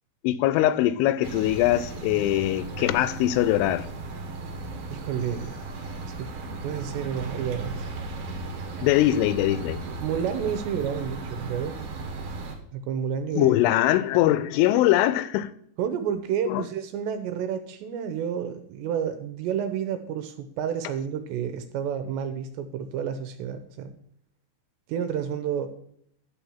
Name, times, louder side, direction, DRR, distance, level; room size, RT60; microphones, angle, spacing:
voice 1, 0.2-3.9 8.8-9.8 13.3-15.5 16.5-16.6, left 14 dB, 85° left, 3.1 m, -22 dB
sound 1, 1.2-12.6, right 3 dB, 60° right, 2.2 m, -36 dB
voice 2, 4.9-5.5 6.0-6.3 6.6-7.9 10.0-11.8 12.7-13.6 15.8-23.9 24.9-25.7, right 8 dB, 80° right, 2.8 m, -30 dB
12.0 x 4.4 x 7.1 m
omnidirectional pair, 5.4 m